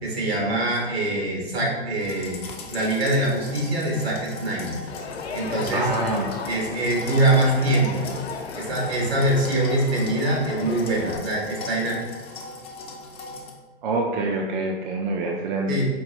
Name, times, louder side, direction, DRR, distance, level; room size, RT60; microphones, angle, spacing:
voice 1, 0.0-2.4 2.7-4.8 5.3-5.9 6.4-8.1 8.6-12.0 15.7-15.8, right 1 dB, 75° right, -2 dB, 1.3 m, -23 dB
sound 1, 2.0-13.5, left 3 dB, 20° left, 0.4 m, -40 dB
Crowd, 4.9-11.2, left 4 dB, 80° left, 0.5 m, -34 dB
voice 2, 5.7-6.3 13.8-15.7, right 2 dB, 50° right, 1 dB, 0.5 m, -26 dB
4.5 x 2.6 x 3.0 m, 1.3 s
figure-of-eight pair, 105°, 31 cm